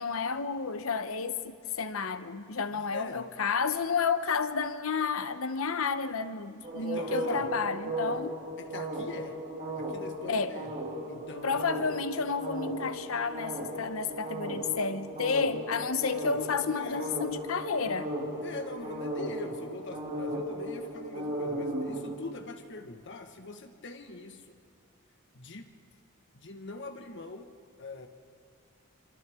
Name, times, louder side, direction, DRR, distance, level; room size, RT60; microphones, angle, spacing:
voice 1, 0.0-8.4 10.3-10.5 11.4-18.1, left 5 dB, 80° left, 0.9 m, -31 dB
voice 2, 2.7-3.3 6.8-7.5 8.6-9.4 9.7-10.7 11.1-11.6 16.7-17.1 18.4-24.6 25.3-25.7 26.3-27.5 27.8-28.1, left 3 dB, 60° left, 1.5 m, -43 dB
sound 1, 6.6-22.1, right 1 dB, 40° right, 2.7 m, -36 dB
27.0 x 26.0 x 3.7 m
head